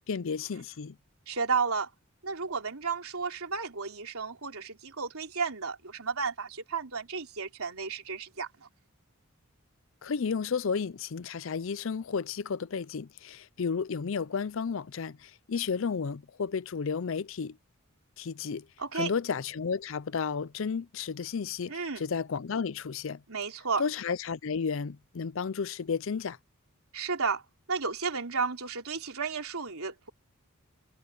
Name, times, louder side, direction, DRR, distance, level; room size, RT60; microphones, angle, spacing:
voice 1, 0.1-0.9 10.0-17.6 18.2-18.6 18.9-23.2 23.8-26.4, left 5 dB, 65° left, 0.5 m, -32 dB
voice 2, 1.3-1.9 2.2-8.5 18.8-19.1 21.7-22.0 23.3-23.8 26.9-27.4 27.7-30.1, right 5 dB, 85° right, 3.4 m, -32 dB
head